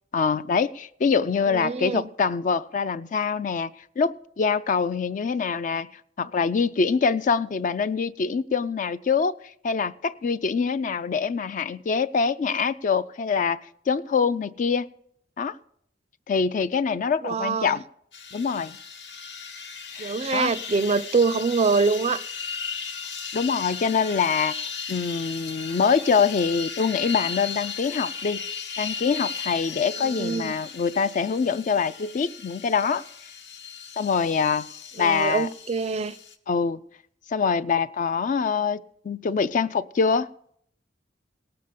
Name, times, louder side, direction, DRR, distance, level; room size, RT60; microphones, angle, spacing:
voice 1, 0.1-3.7 4.0-5.9 6.2-9.4 9.6-13.6 13.9-14.9 15.4-15.6 16.3-17.8 18.3-18.8 19.9-20.5 23.3-24.6 24.9-28.4 28.8-33.0 34.0-34.7 35.0-35.5 36.5-36.8 37.3-40.3, left 5 dB, 45° left, 0.4 m, -24 dB
voice 2, 1.5-2.1 17.2-17.8 20.0-22.2 30.0-30.6 35.0-36.1, right 4 dB, 35° right, 0.4 m, -24 dB
sound 1, 18.1-36.4, left 6 dB, 80° left, 1.2 m, -36 dB
18.0 x 6.8 x 5.1 m
head